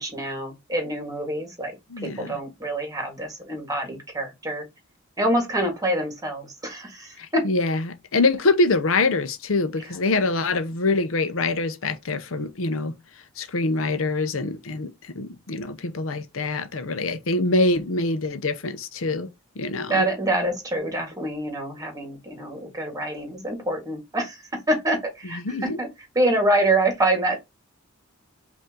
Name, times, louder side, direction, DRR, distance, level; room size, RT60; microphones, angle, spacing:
voice 1, 0.0-1.7 2.0-4.6 5.2-7.5 9.8-9.9 19.9-24.4 24.7-25.9 26.2-27.4, right 1 dB, 15° right, 1.8 m, -26 dB
voice 2, 1.9-2.4 7.2-12.9 13.4-14.9 15.2-19.3 19.6-20.0 25.2-25.8, left 3 dB, 75° left, 0.7 m, -24 dB
5.3 x 2.7 x 3.7 m
head